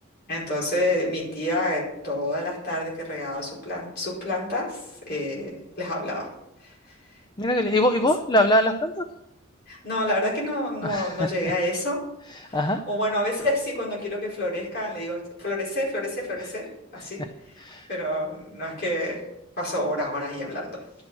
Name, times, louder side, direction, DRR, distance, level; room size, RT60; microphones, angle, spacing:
voice 1, 0.3-6.3 6.6-6.7 9.7-12.0 12.4-16.7 16.9-17.2 17.9-19.2 19.6-20.7, left 1 dB, 50° left, -5 dB, 4.9 m, -28 dB
voice 2, 7.4-9.1 10.8-11.3 12.4-12.8 17.0-17.1 17.6-17.9, left 1 dB, 20° left, 7 dB, 0.5 m, -23 dB
11.0 x 6.1 x 8.7 m, 0.85 s
head